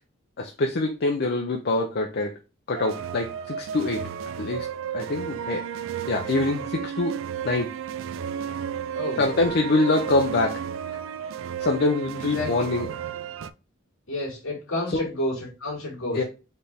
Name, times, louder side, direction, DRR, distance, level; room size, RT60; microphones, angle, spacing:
voice 1, 0.4-2.3 2.7-4.0 4.4-5.6 6.1-7.2 7.4-7.7 9.2-10.6 11.6-12.9 14.9-15.0 16.1-16.2, left 2 dB, 55° left, 3 dB, 0.6 m, -24 dB
sound 1, 2.7-13.5, right 8 dB, 70° right, 0.4 m, -33 dB
voice 2, 12.2-12.5 14.1-16.2, left 1 dB, 90° left, -3 dB, 2.2 m, -30 dB
4.4 x 3.4 x 3.4 m, 0.30 s
head